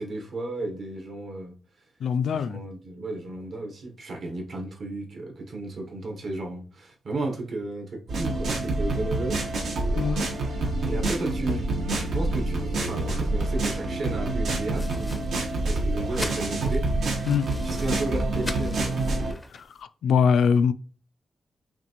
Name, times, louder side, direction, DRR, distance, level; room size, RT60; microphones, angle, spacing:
voice 1, 0.0-1.5 2.3-9.5 10.8-11.6 12.0-17.3 17.6-19.0, right 2 dB, 55° right, 1.1 m, -34 dB
voice 2, 2.0-2.6 10.0-10.2 17.3-17.5 19.8-20.7, left 6 dB, 85° left, 0.3 m, -22 dB
sound 1, 8.1-19.3, right 2 dB, 80° right, 1.1 m, -27 dB
Bass guitar, 11.7-17.9, right 4 dB, 35° right, 0.8 m, -43 dB
sound 2, 14.7-19.8, left 2 dB, 15° left, 0.4 m, -42 dB
5.8 x 2.4 x 3.0 m
wide cardioid pair, 145°, 0 cm